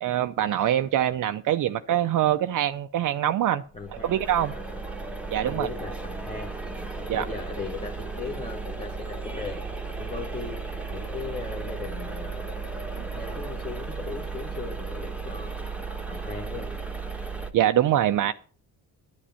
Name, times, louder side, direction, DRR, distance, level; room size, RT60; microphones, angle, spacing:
voice 1, 0.0-3.6 4.0-4.5 5.3-5.7 7.1-7.2 17.5-18.3, right 11 dB, 55° right, 0.6 m, -24 dB
voice 2, 3.7-4.8 5.4-9.6 10.0-10.6 10.9-12.5 13.0-16.7, left 4 dB, 15° left, 1.5 m, -38 dB
sound 1, 3.7-17.5, right 4 dB, 5° right, 1.3 m, -35 dB
10.5 x 10.0 x 5.7 m
cardioid pair, 110°, 38 cm